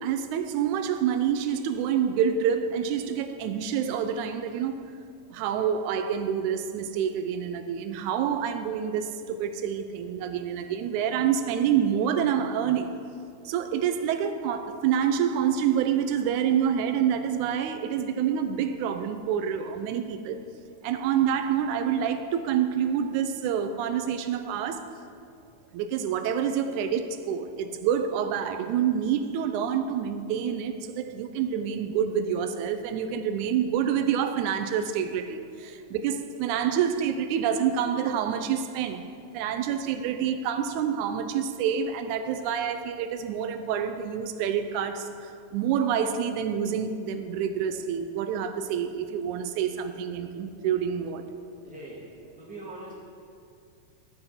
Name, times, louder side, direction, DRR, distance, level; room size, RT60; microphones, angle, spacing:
voice 1, 0.0-4.9 5.3-12.9 13.5-20.4 20.8-24.9 25.7-39.0 39.3-51.2, right 8 dB, 85° right, 2.0 m, -27 dB
voice 2, 51.6-52.0 52.4-52.9, right 2 dB, 5° right, 1.6 m, -41 dB
10.5 x 7.8 x 4.2 m
omnidirectional pair, 3.4 m